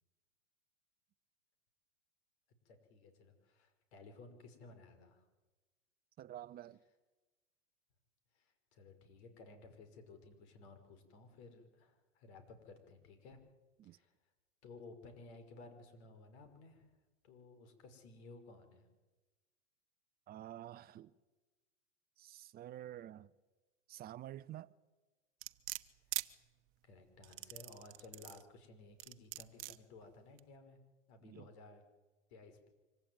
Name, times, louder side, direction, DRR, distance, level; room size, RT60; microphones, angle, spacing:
voice 1, 2.6-5.3 8.3-13.4 13.8-14.1 14.6-16.9 17.2-18.9 26.1-26.2 26.8-30.8 31.1-31.8 32.3-32.7, left 3 dB, 60° left, 5.7 m, -57 dB
voice 2, 6.2-6.8 13.8-14.0 20.3-21.2 22.2-23.3 23.9-24.7 31.2-31.5, right 12 dB, 25° right, 0.7 m, -49 dB
sound 1, 25.4-26.3 27.2-28.4 29.0-29.8 30.4-30.5, right 20 dB, 50° right, 1.2 m, -42 dB
25.0 x 15.5 x 9.4 m
hypercardioid pair, 115°, 38 cm